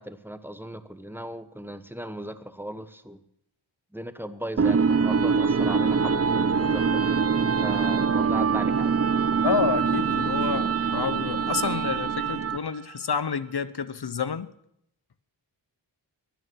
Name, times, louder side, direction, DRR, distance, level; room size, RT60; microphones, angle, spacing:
voice 1, 0.0-3.2 3.9-9.0, right 1 dB, 5° right, 1.0 m, -38 dB
sound 1, 4.6-12.8, right 5 dB, 35° right, 0.6 m, -24 dB
voice 2, 9.4-14.5, left 6 dB, 60° left, 0.9 m, -29 dB
22.0 x 9.4 x 6.3 m
wide cardioid pair, 85°, 45 cm